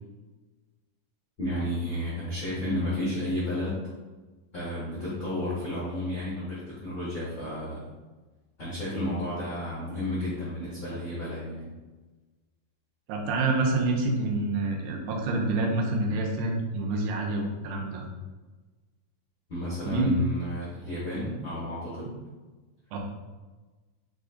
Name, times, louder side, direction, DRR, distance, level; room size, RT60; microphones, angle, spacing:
voice 1, 1.4-3.8 4.5-7.8 8.6-11.7 19.5-22.1, left 1 dB, 65° left, -9 dB, 1.0 m, -32 dB
voice 2, 13.1-18.1 19.8-20.1 22.9-23.0, right 2 dB, 85° right, 1 dB, 2.2 m, -27 dB
4.9 x 4.2 x 2.4 m, 1.2 s
omnidirectional pair, 4.1 m